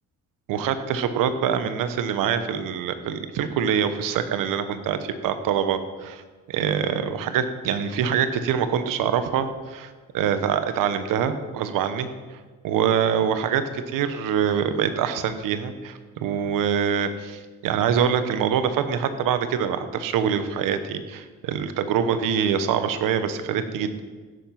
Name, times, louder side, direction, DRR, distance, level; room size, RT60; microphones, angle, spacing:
voice 1, 0.5-6.2 6.5-12.1 12.6-24.0, right 8 dB, 80° right, 10 dB, 1.1 m, -25 dB
15.5 x 7.0 x 5.8 m, 1.4 s
supercardioid pair, 70°, 32 cm